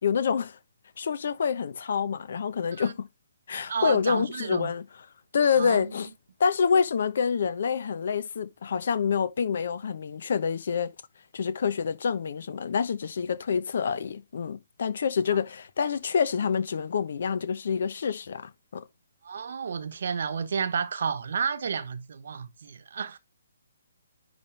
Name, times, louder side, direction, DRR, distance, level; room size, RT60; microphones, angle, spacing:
voice 1, 0.0-0.6 1.0-3.1 3.5-4.8 5.3-6.1 6.4-10.9 11.3-18.8, left 6 dB, 60° left, 1.1 m, -27 dB
voice 2, 3.7-4.7 5.5-5.9 19.2-23.2, right 6 dB, 60° right, 1.1 m, -31 dB
10.5 x 3.6 x 3.4 m
figure-of-eight pair, 135°, 0 cm